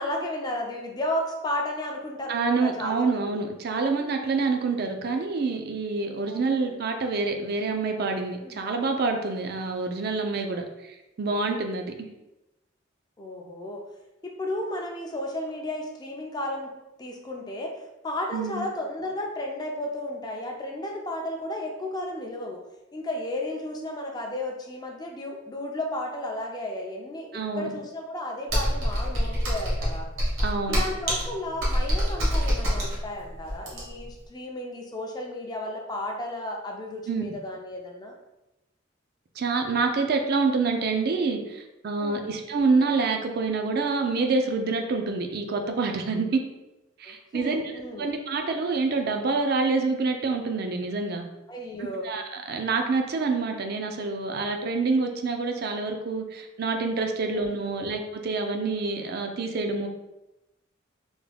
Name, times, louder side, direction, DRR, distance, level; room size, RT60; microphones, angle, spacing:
voice 1, 0.0-3.4 6.2-6.8 8.4-8.6 13.2-13.8 14.2-22.6 22.9-27.3 27.5-30.1 30.7-38.2 42.0-42.3 47.0-48.1 51.5-52.1 57.2-57.9, left 1 dB, 20° left, 1 dB, 0.4 m, -33 dB
voice 2, 2.3-11.9 18.3-18.7 27.3-27.7 30.4-30.8 37.1-37.2 39.4-46.4 47.0-47.6 48.0-51.2 52.0-52.2 52.5-59.9, right 4 dB, 50° right, 4 dB, 0.4 m, -27 dB
Computer keyboard, 28.5-34.1, equal, 80° right, 1.2 m, -25 dB
3.5 x 2.2 x 3.3 m, 0.96 s
head